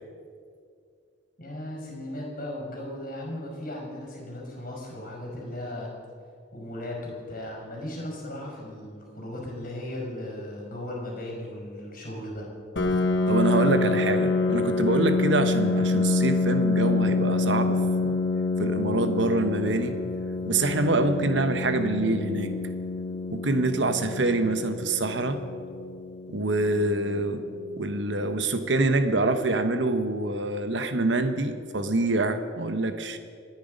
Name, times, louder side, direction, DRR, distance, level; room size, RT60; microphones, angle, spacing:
voice 1, 1.4-5.9 6.5-12.5, left 1 dB, 45° left, -1 dB, 5.3 m, -36 dB
Piano, 12.8-28.2, left 3 dB, 65° left, 1.2 m, -27 dB
voice 2, 13.3-18.2 18.6-20.0 20.5-22.5 23.3-25.4 26.3-27.4 27.8-33.2, right 2 dB, 70° right, 8 dB, 1.1 m, -25 dB
26.0 x 9.6 x 5.3 m, 2.3 s
head